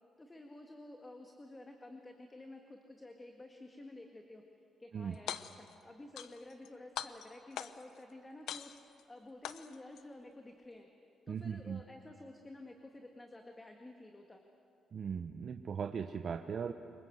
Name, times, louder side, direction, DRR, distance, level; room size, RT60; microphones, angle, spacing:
voice 1, 0.2-4.4 4.8-8.7 9.1-10.9 11.3-14.4, left 2 dB, 20° left, 3 dB, 1.8 m, -52 dB
sound 1, 5.1-5.7 6.2-6.7 7.0-8.0 8.5-9.0 9.4-10.0, left 10 dB, 80° left, 0.8 m, -42 dB
voice 2, 11.3-11.8 14.9-16.7, right 7 dB, 50° right, 7 dB, 0.9 m, -38 dB
26.0 x 22.5 x 7.9 m, 2.9 s
cardioid pair, 90°, 0 cm